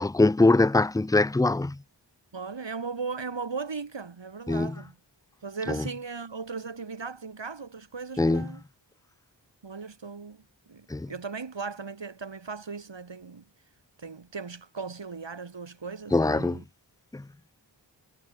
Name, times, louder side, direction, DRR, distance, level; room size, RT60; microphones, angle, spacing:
voice 1, 0.0-1.8 4.5-4.7 5.7-5.8 8.2-8.5 10.9-11.1 16.1-16.6 17.1-17.2, left 2 dB, 10° left, 0.5 m, -22 dB
voice 2, 2.3-5.0 5.4-8.6 9.6-10.4 10.7-13.4 14.0-16.6, right 5 dB, 80° right, 2.6 m, -37 dB
wide cardioid pair, 55°, 44 cm